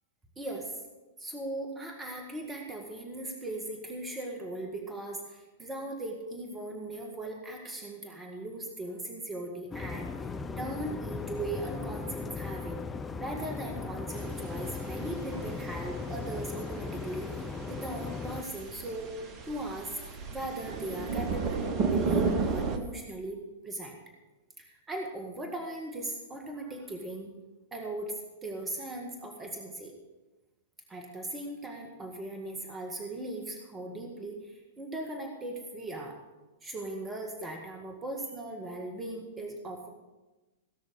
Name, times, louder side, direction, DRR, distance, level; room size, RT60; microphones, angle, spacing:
voice 1, 0.4-0.7 1.2-12.8 13.2-19.1 19.4-24.0 24.6-27.3 27.7-28.1 28.4-29.9 30.9-36.2 36.6-39.9, right 1 dB, 15° right, 2 dB, 1.8 m, -38 dB
sound 1, 9.7-18.4, left 4 dB, 15° left, 0.7 m, -38 dB
sound 2, 14.1-22.8, right 4 dB, 35° right, 1.4 m, -34 dB
17.0 x 6.3 x 6.5 m, 1.1 s
figure-of-eight pair, 105°, 0 cm